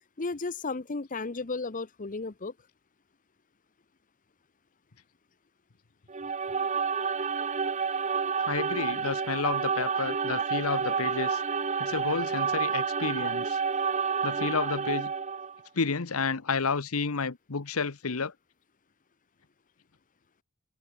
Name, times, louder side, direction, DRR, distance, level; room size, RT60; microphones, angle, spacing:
voice 1, 0.2-2.5, left 3 dB, 40° left, 0.9 m, -34 dB
sound 1, 6.1-15.6, right 6 dB, 35° right, 0.8 m, -29 dB
voice 2, 8.4-11.4 11.8-13.6 14.2-15.1 15.7-18.3, left 4 dB, 80° left, 1.1 m, -31 dB
head